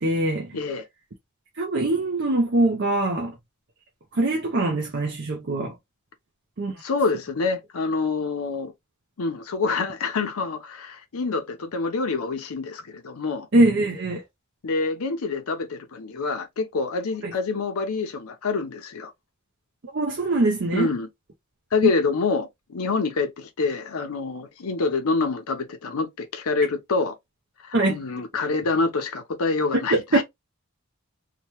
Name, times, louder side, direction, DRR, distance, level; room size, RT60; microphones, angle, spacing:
voice 1, 0.0-0.6 1.5-3.4 4.1-5.8 6.6-6.8 13.5-14.2 17.2-17.3 19.9-20.9 21.8-21.9 27.7-28.0 29.9-30.2, right 2 dB, 50° right, 0.6 m, -23 dB
voice 2, 0.5-0.8 6.8-8.7 9.2-13.5 14.6-19.1 20.7-21.1 21.7-27.1 27.6-30.2, left 4 dB, 85° left, 0.6 m, -26 dB
2.8 x 2.2 x 2.9 m
head